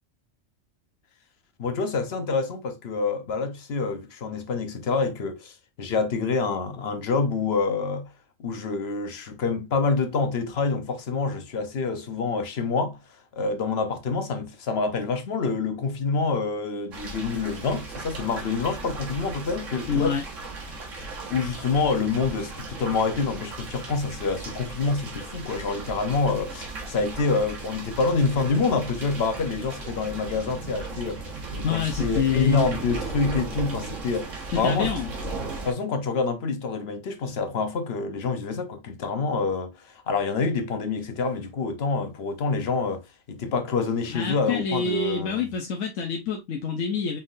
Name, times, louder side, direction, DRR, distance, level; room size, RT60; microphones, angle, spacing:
voice 1, 1.6-8.1 8.4-13.0 13.3-20.1 21.3-31.3 31.5-34.9 35.6-43.0 43.3-45.5, left 4 dB, 55° left, 1.0 m, -27 dB
sound 1, 16.9-35.7, right 3 dB, 75° right, 1.7 m, -36 dB
voice 2, 19.9-20.2 31.6-32.7 34.5-35.1 44.1-47.2, left 6 dB, 75° left, 1.2 m, -26 dB
5.6 x 3.6 x 2.5 m
omnidirectional pair, 1.3 m